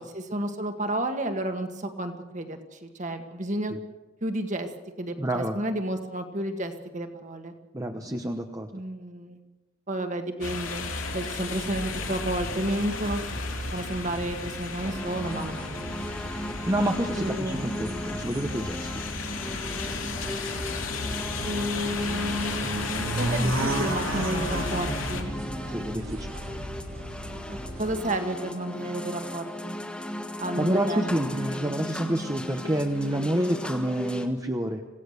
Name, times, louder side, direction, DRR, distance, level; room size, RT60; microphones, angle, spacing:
voice 1, 0.0-3.7 4.2-4.7 5.0-7.5 8.7-9.4 9.9-13.2 13.7-15.9 17.2-17.7 21.4-25.3 27.5-29.8 30.4-31.3, right 1 dB, 35° right, 6 dB, 1.8 m, -31 dB
voice 2, 5.2-5.6 7.7-8.7 16.6-18.9 25.7-26.4 30.6-34.8, right 1 dB, 15° right, 4 dB, 1.0 m, -28 dB
sound 1, 10.4-25.2, left 4 dB, 70° left, 3.3 m, -34 dB
sound 2, 11.6-28.0, right 1 dB, 75° right, 2.8 m, -36 dB
sound 3, 14.8-34.3, left 1 dB, 5° left, 1.6 m, -36 dB
26.0 x 17.0 x 6.7 m, 1.2 s
head